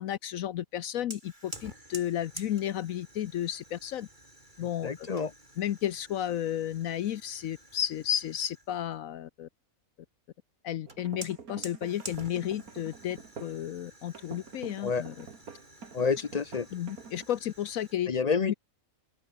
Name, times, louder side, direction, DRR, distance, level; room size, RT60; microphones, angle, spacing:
voice 1, 0.0-4.1 4.6-5.1 5.6-9.5 10.6-15.3 16.7-18.1 18.5-18.6, left 11 dB, 75° left, 1.1 m, -33 dB
Fire, 1.1-8.8 10.9-18.0, right 1 dB, 30° right, 6.9 m, -49 dB
voice 2, 4.8-5.3 14.8-15.0 15.9-16.7 18.1-18.5, left 5 dB, 45° left, 0.5 m, -28 dB
sound 1, 10.9-13.6 14.1-17.3, right 6 dB, 90° right, 2.3 m, -47 dB
open air
omnidirectional pair, 1.5 m